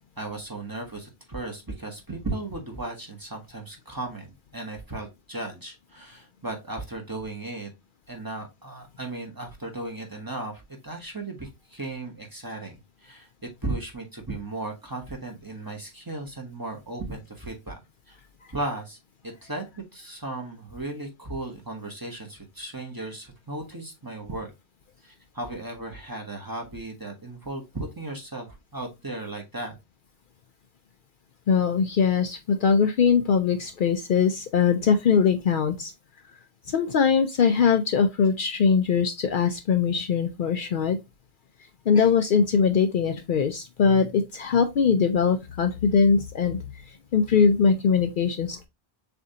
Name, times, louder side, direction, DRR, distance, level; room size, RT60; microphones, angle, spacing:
voice 1, 0.2-7.7 8.1-12.8 13.0-13.3 13.6-17.8 18.1-18.2 18.5-19.0 19.2-19.7 19.9-24.5 25.0-29.8, right 2 dB, 20° right, 1.0 m, -36 dB
voice 2, 31.5-35.9 36.7-41.0 41.9-46.6 47.1-48.7, left 6 dB, 60° left, 0.6 m, -21 dB
6.7 x 2.6 x 2.7 m
omnidirectional pair, 1.0 m